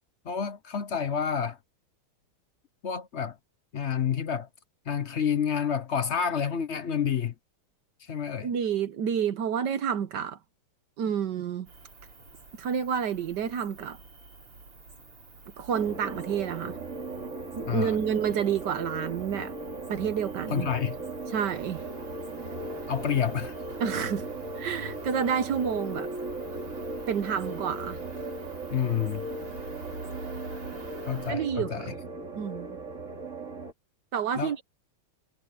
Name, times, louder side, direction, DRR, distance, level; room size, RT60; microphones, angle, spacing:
voice 1, 0.2-1.6 2.8-3.4 3.7-4.5 4.9-7.3 8.0-8.5 17.7-18.0 20.5-21.0 22.9-23.6 28.7-29.3 31.1-31.9 34.3-34.5, left 7 dB, 55° left, 0.7 m, -29 dB
voice 2, 8.4-10.4 11.0-11.7 12.6-14.0 15.6-16.8 17.6-19.5 19.9-20.7 21.3-21.8 23.8-24.2 24.6-26.1 27.1-28.0 31.3-31.9 32.3-32.8 34.1-34.6, right 8 dB, 60° right, 1.4 m, -29 dB
Cricket, 11.7-31.3, right 3 dB, 90° right, 5.0 m, -47 dB
sound 1, 15.7-33.7, right 2 dB, 35° right, 2.9 m, -38 dB
omnidirectional pair, 2.3 m